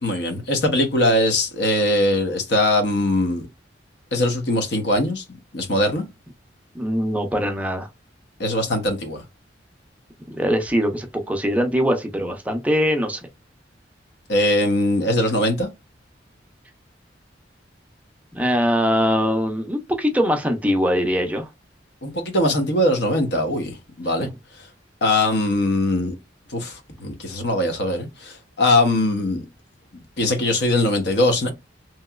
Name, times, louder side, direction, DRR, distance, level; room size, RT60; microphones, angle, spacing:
voice 1, 0.0-3.5 4.1-5.2 5.5-6.1 8.4-9.2 14.3-15.7 22.0-24.3 25.0-26.1 26.5-29.4 30.2-31.5, left 1 dB, 70° left, 0.8 m, -21 dB
voice 2, 6.7-7.9 10.3-13.2 18.3-21.5 24.2-24.3, equal, 10° right, 0.5 m, -22 dB
3.0 x 2.8 x 2.3 m
head